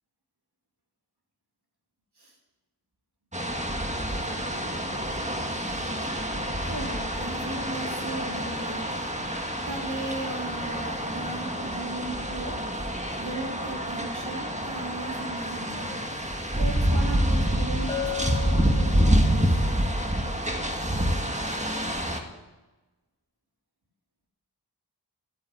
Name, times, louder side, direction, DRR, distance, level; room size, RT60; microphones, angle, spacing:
sound 1, 3.3-22.2, equal, 15° right, 1.7 m, -27 dB
voice 1, 6.7-8.9 9.7-12.6 13.2-16.1 16.6-19.7, right 2 dB, 75° right, -1 dB, 3.4 m, -37 dB
Bell, 17.9-19.5, left 9 dB, 10° left, 2.6 m, -35 dB
13.5 x 9.3 x 7.9 m, 1.1 s
wide cardioid pair, 45°, 40 cm